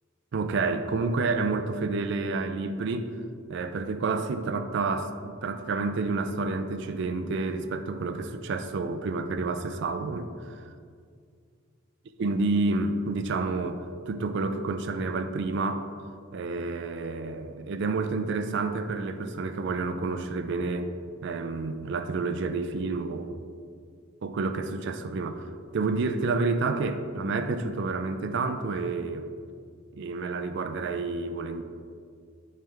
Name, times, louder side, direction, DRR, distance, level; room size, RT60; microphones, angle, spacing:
voice 1, 0.3-3.1 3.5-10.6 12.2-15.9 16.3-20.9 21.2-23.4 24.2-25.5 25.7-29.3 29.9-31.6, right 3 dB, 60° right, 9 dB, 0.4 m, -29 dB
8.8 x 3.3 x 3.4 m, 2.2 s
head